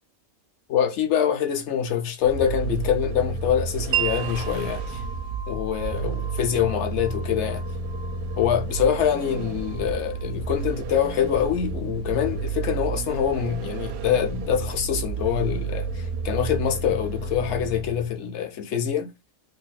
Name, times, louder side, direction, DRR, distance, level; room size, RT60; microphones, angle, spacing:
voice 1, 0.7-5.0 5.5-7.6 8.4-19.1, left 9 dB, 60° left, 0.8 m, -25 dB
Vehicle, 2.2-18.2, right 4 dB, 65° right, 0.7 m, -31 dB
Wind chime, 3.9-11.6, right 9 dB, 80° right, 1.0 m, -36 dB
2.8 x 2.5 x 3.9 m
omnidirectional pair, 1.5 m